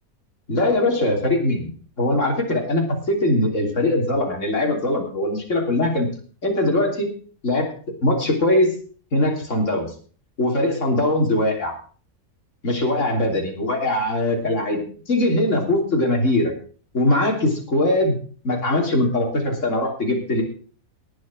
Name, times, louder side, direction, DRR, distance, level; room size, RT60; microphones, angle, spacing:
voice 1, 0.5-1.7 2.0-6.1 6.4-7.1 7.4-7.7 8.0-8.7 9.1-9.9 10.4-11.7 12.6-16.5 16.9-18.2 18.4-20.4, left 1 dB, 60° left, 1 dB, 3.6 m, -21 dB
19.0 x 6.5 x 6.1 m, 0.42 s
omnidirectional pair, 1.5 m